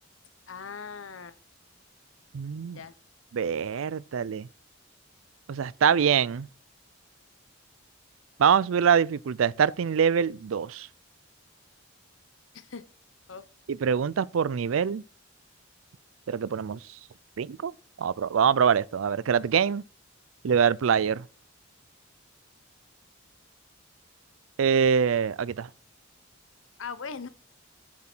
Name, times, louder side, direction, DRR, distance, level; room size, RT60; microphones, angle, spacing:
voice 1, 0.5-1.4 2.7-2.9 12.5-12.8 13.3-13.4 20.5-20.6 26.8-27.3, left 5 dB, 70° left, 0.9 m, -39 dB
voice 2, 2.3-2.8 3.3-4.5 5.5-6.5 8.4-10.9 13.7-15.0 16.3-16.8 17.4-17.7 18.0-19.8 20.4-21.2 24.6-25.7, right 7 dB, 75° right, 0.4 m, -24 dB
7.6 x 7.4 x 4.5 m
head